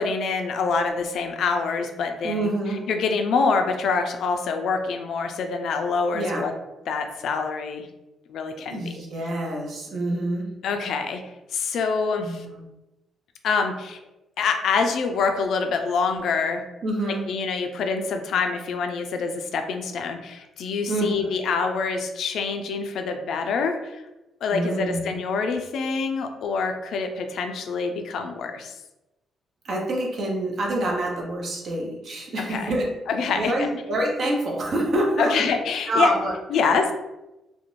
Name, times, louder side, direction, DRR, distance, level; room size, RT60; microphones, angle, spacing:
voice 1, 0.0-2.5 2.9-6.5 6.9-7.9 8.3-8.8 10.6-11.2 11.5-12.4 13.4-14.0 14.4-16.6 17.3-24.0 24.4-28.8 32.5-32.7 33.1-33.8 35.2-36.1 36.5-36.9, left 5 dB, 70° left, 6 dB, 0.3 m, -25 dB
voice 2, 2.2-2.8 6.1-6.5 8.6-10.5 12.2-12.6 16.8-17.2 20.9-21.3 24.5-25.0 29.6-32.9 33.3-35.5 35.9-36.3, right 1 dB, 55° right, -1 dB, 0.7 m, -26 dB
2.4 x 2.1 x 3.0 m, 0.99 s
cardioid pair, 90°, 0 cm